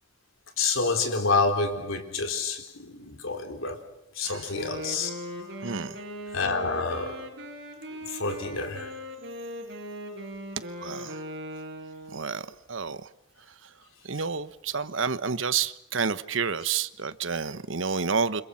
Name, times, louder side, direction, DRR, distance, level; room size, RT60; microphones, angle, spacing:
voice 1, 0.6-5.2 6.3-7.3 7.9-8.9, left 4 dB, 85° left, 3.9 m, -28 dB
Wind instrument woodwind instrument, 4.5-12.4, equal, 55° right, 6.2 m, -39 dB
voice 2, 5.6-6.0 10.8-11.2 12.1-13.1 14.0-18.4, right 5 dB, 75° right, 1.2 m, -29 dB
29.5 x 26.5 x 5.8 m
head